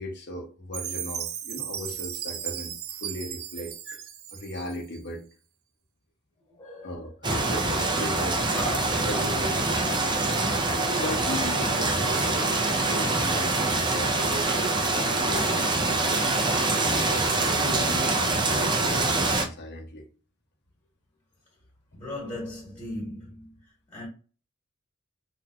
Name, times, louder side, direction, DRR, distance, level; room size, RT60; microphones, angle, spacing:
voice 1, 0.0-4.0 4.3-5.2 6.8-8.4 8.9-10.0 10.8-14.6 15.0-16.3 17.0-18.1 18.4-20.1, left 1 dB, 55° left, 1.0 m, -37 dB
Chime, 0.7-5.0, right 10 dB, 75° right, 0.5 m, -36 dB
voice 2, 6.4-7.2 8.5-9.1 10.3-10.8 21.9-24.1, left 1 dB, 20° left, 1.6 m, -38 dB
sound 1, 7.2-19.4, right 2 dB, 20° right, 0.5 m, -25 dB
3.5 x 2.8 x 2.3 m
head